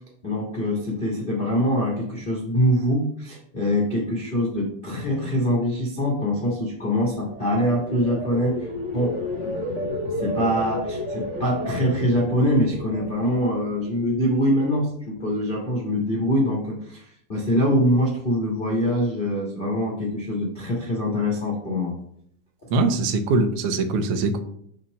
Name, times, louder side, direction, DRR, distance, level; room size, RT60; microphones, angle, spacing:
voice 1, 0.2-9.2 10.2-21.9, equal, 80° left, -2 dB, 0.4 m, -24 dB
sound 1, 6.9-14.1 14.5-14.9, left 1 dB, 35° right, 1.1 m, -32 dB
voice 2, 22.7-24.4, right 3 dB, 75° right, 6 dB, 1.3 m, -22 dB
5.7 x 4.4 x 6.3 m, 0.67 s
omnidirectional pair, 3.9 m